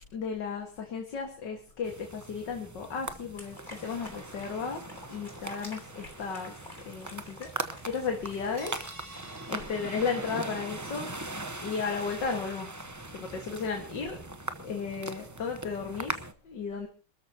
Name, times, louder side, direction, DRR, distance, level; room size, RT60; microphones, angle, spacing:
voice 1, 0.1-4.8 5.1-6.5 6.9-8.7 9.2-12.8 13.1-14.2 14.6-16.9, left 5 dB, 75° left, 3 dB, 2.4 m, -35 dB
sound 1, 1.8-16.3, right 2 dB, 15° right, 0.5 m, -41 dB
sound 2, 3.4-8.6, left 1 dB, 25° left, 3.5 m, -50 dB
sound 3, 8.6-11.1, right 2 dB, 75° right, 4.3 m, -50 dB
27.0 x 13.5 x 2.9 m, 0.34 s
omnidirectional pair, 1.9 m